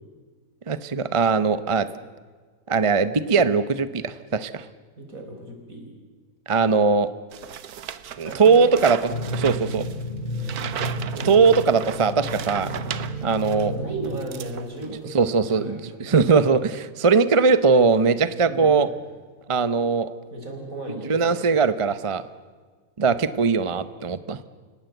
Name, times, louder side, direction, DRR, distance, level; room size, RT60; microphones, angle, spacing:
voice 1, 0.7-1.9 2.7-4.6 6.5-7.1 8.2-9.8 11.2-12.7 13.2-13.7 15.1-18.9 19.5-20.1 20.9-22.2 23.0-24.4, right 5 dB, 30° right, 14 dB, 0.6 m, -20 dB
voice 2, 5.0-5.9 8.2-8.9 11.1-11.7 13.5-16.1 18.5-18.9 20.3-21.6, right 2 dB, 65° right, 3 dB, 4.9 m, -36 dB
sound 1, 7.3-13.7 14.0-15.0, right 9 dB, 85° right, 1.5 m, -36 dB
sound 2, 9.1-14.2, right 1 dB, 35° left, 2.2 m, -31 dB
29.5 x 17.5 x 7.9 m, 1.5 s
omnidirectional pair, 1.6 m